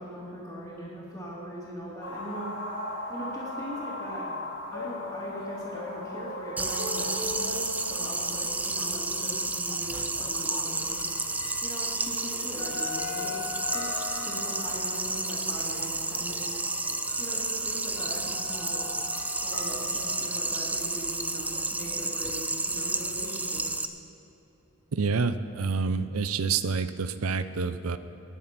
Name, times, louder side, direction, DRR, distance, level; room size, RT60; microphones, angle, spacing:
voice 1, 0.0-2.5 3.1-4.3 4.7-11.0 11.6-16.6 17.2-18.9 19.4-23.8, equal, 10° left, -12 dB, 2.8 m, -40 dB
sound 1, 2.0-7.2, left 1 dB, 70° left, 3.3 m, -38 dB
sound 2, 4.7-9.0 10.7-21.2, left 3 dB, 85° left, 1.8 m, -41 dB
sound 3, 6.6-23.9, right 2 dB, 5° right, 0.4 m, -31 dB
voice 2, 24.9-28.0, right 4 dB, 70° right, 12 dB, 0.6 m, -28 dB
20.5 x 7.6 x 5.9 m, 2.9 s
head